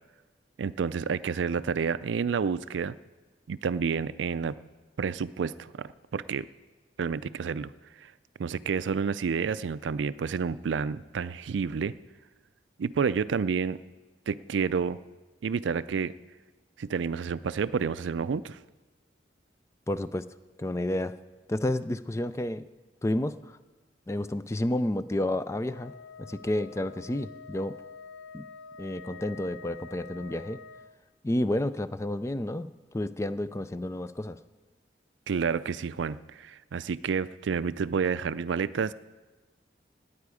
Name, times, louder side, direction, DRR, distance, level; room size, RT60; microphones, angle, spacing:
voice 1, 0.6-2.9 3.5-4.6 5.0-6.4 7.0-7.7 8.4-11.9 12.8-13.8 14.3-15.0 15.4-16.1 16.8-18.6 35.3-38.9, right 6 dB, 90° right, 16 dB, 0.4 m, -29 dB
voice 2, 19.9-20.3 20.6-21.1 21.5-22.6 23.0-23.6 24.1-25.9 26.2-27.8 28.3-28.5 28.8-30.6 31.2-34.4, left 1 dB, 15° left, 13 dB, 0.3 m, -30 dB
Wind instrument woodwind instrument, 25.7-31.0, left 4 dB, 90° left, 0.9 m, -47 dB
17.5 x 9.6 x 4.9 m, 1.2 s
head